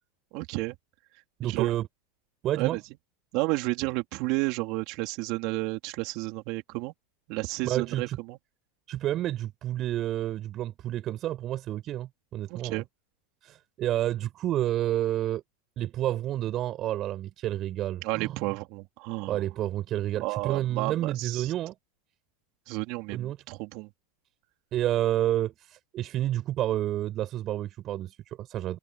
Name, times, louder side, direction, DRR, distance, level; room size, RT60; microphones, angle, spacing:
voice 1, 0.3-0.8 1.4-1.7 2.5-2.8 3.3-6.9 7.3-8.4 12.5-12.9 18.0-19.5 20.2-21.5 22.7-23.9, right 24 dB, 55° right, 3.5 m, -31 dB
voice 2, 1.4-1.9 2.4-2.8 7.6-8.2 8.9-12.8 13.4-15.4 15.8-18.4 19.3-21.7 23.1-23.4 24.7-28.8, right 13 dB, 40° right, 7.4 m, -30 dB
hypercardioid pair, 110°, 0 cm